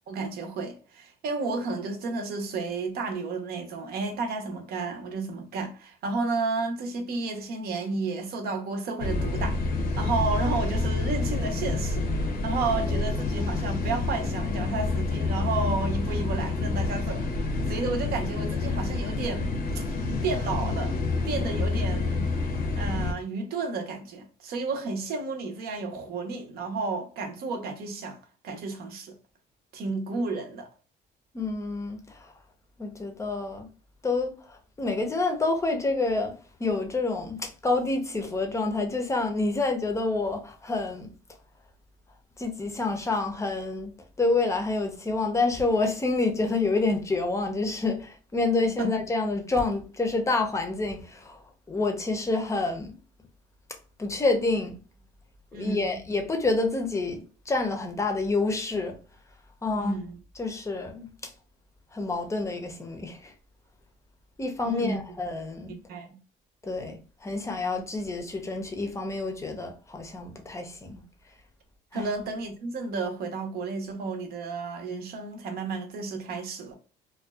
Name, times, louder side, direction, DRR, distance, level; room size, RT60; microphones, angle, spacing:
voice 1, 0.1-17.3 17.7-19.5 19.7-19.9 20.2-21.0 21.2-22.3 22.8-28.2 28.4-29.1 29.7-30.7 48.8-48.9 55.5-56.0 59.7-60.1 64.6-65.0 65.9-66.2 71.9-76.7, right 3 dB, 65° right, 0.7 m, -32 dB
sound 1, 9.0-23.1, left 3 dB, 65° left, 0.6 m, -28 dB
voice 2, 31.3-32.3 32.8-33.7 34.0-36.3 36.6-41.1 42.4-43.9 44.2-53.0 54.0-54.8 55.5-59.0 59.6-60.0 60.4-61.3 61.9-63.3 64.4-65.7 66.6-71.0 71.9-72.1, left 3 dB, 15° left, 0.6 m, -28 dB
2.5 x 2.2 x 2.2 m
cardioid pair, 110°, 17 cm